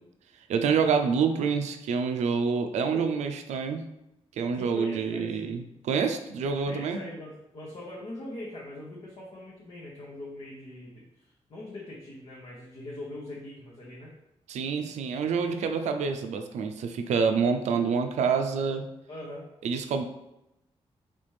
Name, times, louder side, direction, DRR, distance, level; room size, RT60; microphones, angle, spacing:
voice 1, 0.5-3.8 4.4-7.0 14.5-18.9 19.6-20.0, right 5 dB, 90° right, 6 dB, 0.4 m, -27 dB
voice 2, 4.5-5.4 6.7-14.1 19.1-19.4, left 1 dB, 60° left, -5 dB, 1.0 m, -41 dB
4.1 x 3.4 x 3.2 m, 0.88 s
cardioid pair, 75°, 11 cm